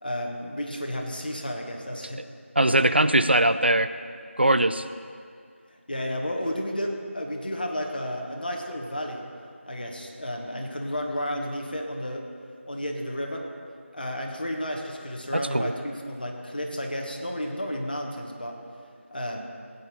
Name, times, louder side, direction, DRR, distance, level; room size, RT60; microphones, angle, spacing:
voice 1, 0.0-2.2 5.9-9.2 9.7-12.3 12.7-13.5 13.9-18.6 19.1-19.4, equal, 40° left, 1 dB, 1.4 m, -32 dB
voice 2, 2.6-3.9 4.4-4.8 15.3-15.7, right 1 dB, 50° right, 12 dB, 0.5 m, -21 dB
16.0 x 9.4 x 4.4 m, 2.2 s
figure-of-eight pair, 175°, 7 cm